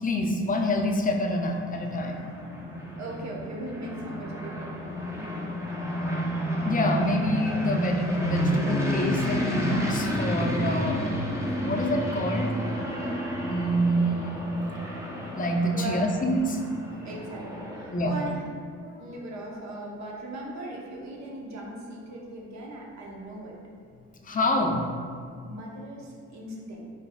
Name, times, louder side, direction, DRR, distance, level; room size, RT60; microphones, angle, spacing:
voice 1, 0.0-2.2 6.6-11.0 11.7-12.6 13.4-14.5 15.3-17.1 17.9-18.2 18.8-19.0 24.2-24.9, equal, 30° left, 2 dB, 0.5 m, -26 dB
sound 1, 1.2-18.3, equal, 10° right, 0.6 m, -31 dB
voice 2, 3.0-4.8 5.1-5.5 13.1-13.2 15.7-16.1 17.0-18.5 19.0-23.6 25.4-26.9, right 2 dB, 65° right, -2 dB, 0.9 m, -38 dB
4.3 x 3.8 x 2.3 m, 2.2 s
cardioid pair, 90°, 30 cm